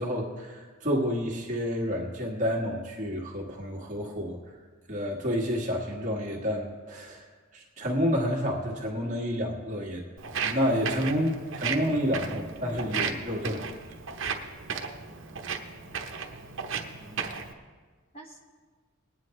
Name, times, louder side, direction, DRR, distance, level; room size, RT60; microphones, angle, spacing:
voice 1, 0.0-4.4 4.9-7.2 7.5-10.0 10.4-13.7, equal, 35° right, -2 dB, 1.7 m, -29 dB
Walk footsteps, 10.2-17.5, right 6 dB, 60° right, 0.9 m, -35 dB
voice 2, 15.1-15.8 17.0-17.3 18.1-18.4, right 1 dB, 30° left, -1 dB, 1.8 m, -50 dB
20.0 x 9.6 x 3.2 m, 1.4 s
head